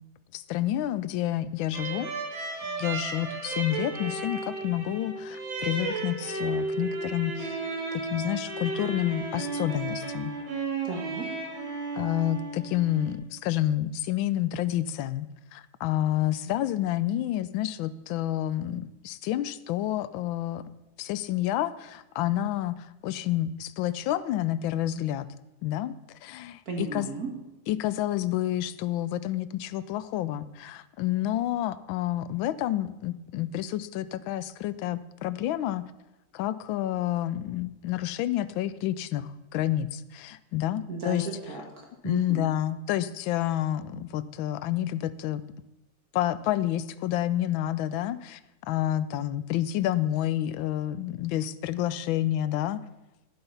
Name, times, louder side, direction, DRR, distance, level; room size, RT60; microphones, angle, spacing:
voice 1, 0.3-2.1 2.7-7.6 7.9-10.3 11.9-15.3 15.5-20.6 21.0-25.3 25.6-25.9 26.2-27.1 27.7-35.8 36.3-41.3 42.0-45.4 46.1-52.8, left 13 dB, 85° left, 15 dB, 1.3 m, -29 dB
sound 1, 1.7-13.1, right 3 dB, 80° right, 2.5 m, -34 dB
voice 2, 10.8-11.3 26.7-27.3 40.9-42.5, right 3 dB, 50° right, 1 dB, 1.9 m, -35 dB
11.5 x 7.9 x 5.5 m, 0.97 s
omnidirectional pair, 2.1 m